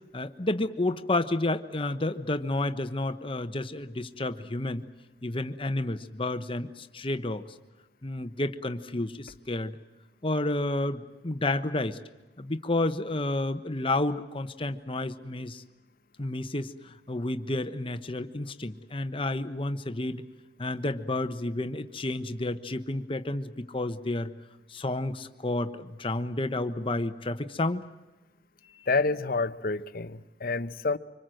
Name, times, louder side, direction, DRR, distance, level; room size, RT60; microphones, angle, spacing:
voice 1, 0.1-4.8 5.2-7.4 8.0-9.8 10.2-12.0 12.4-15.6 16.2-20.2 20.6-24.3 24.7-27.9 28.8-28.9, left 2 dB, 30° left, 1.1 m, -30 dB
voice 2, 28.9-31.0, left 3 dB, 55° left, 0.9 m, -28 dB
25.0 x 25.0 x 7.8 m
head